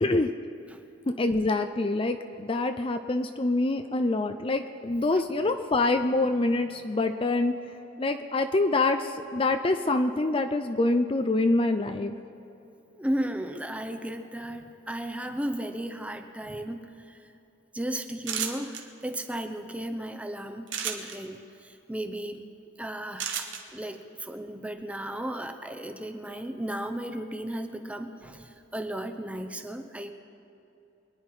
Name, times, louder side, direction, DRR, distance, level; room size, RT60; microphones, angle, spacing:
voice 1, 1.2-7.5 8.0-12.1, left 2 dB, 30° left, 8 dB, 0.5 m, -25 dB
voice 2, 13.0-17.2 17.7-22.4 22.8-23.5 23.7-30.1, right 1 dB, 5° right, 7 dB, 0.8 m, -35 dB
sound 1, 18.2-18.8 20.7-21.2 23.2-23.6, right 8 dB, 75° right, 1.5 m, -31 dB
24.5 x 10.5 x 4.9 m, 2.9 s
head